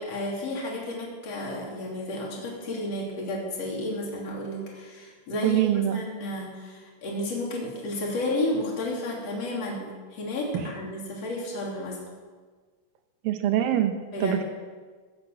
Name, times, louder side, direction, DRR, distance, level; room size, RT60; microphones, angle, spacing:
voice 1, 0.0-12.0 14.1-14.4, left 1 dB, 45° left, -3 dB, 4.1 m, -32 dB
voice 2, 5.4-6.0 10.5-10.6 13.2-13.9 14.2-14.4, right 11 dB, 80° right, 7 dB, 2.8 m, -24 dB
19.0 x 8.4 x 7.7 m, 1.5 s
omnidirectional pair, 4.1 m